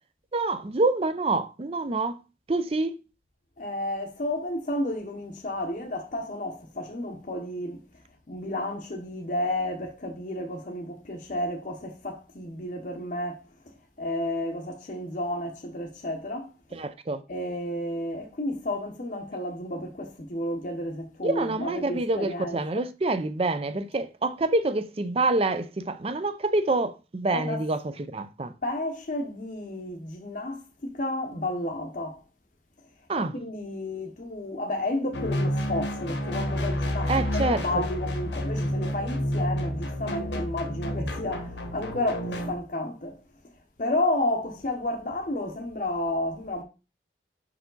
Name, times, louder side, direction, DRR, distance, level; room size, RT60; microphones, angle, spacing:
voice 1, 0.3-2.2 2.5-2.9 16.7-17.2 21.2-28.5 33.1-33.4 37.1-37.8, right 2 dB, 30° right, 0.4 m, -27 dB
voice 2, 3.6-7.8 8.3-13.4 14.0-16.5 17.3-22.6 27.3-27.6 28.6-32.2 33.1-43.2 43.8-46.6, left 1 dB, 45° left, 0.8 m, -31 dB
sound 1, 35.1-42.6, equal, 75° left, 1.2 m, -29 dB
5.6 x 4.7 x 3.9 m
head